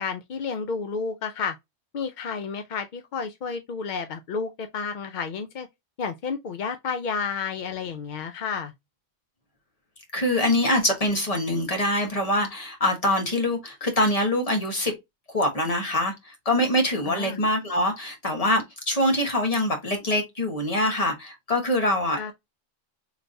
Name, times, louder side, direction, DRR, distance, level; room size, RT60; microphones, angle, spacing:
voice 1, 0.0-1.6 1.9-5.7 6.0-8.7 17.1-17.4 22.2-22.3, left 5 dB, 60° left, 0.5 m, -31 dB
voice 2, 10.1-14.9 15.3-22.3, left 1 dB, 30° left, 1.3 m, -24 dB
4.0 x 3.3 x 2.5 m
omnidirectional pair, 1.3 m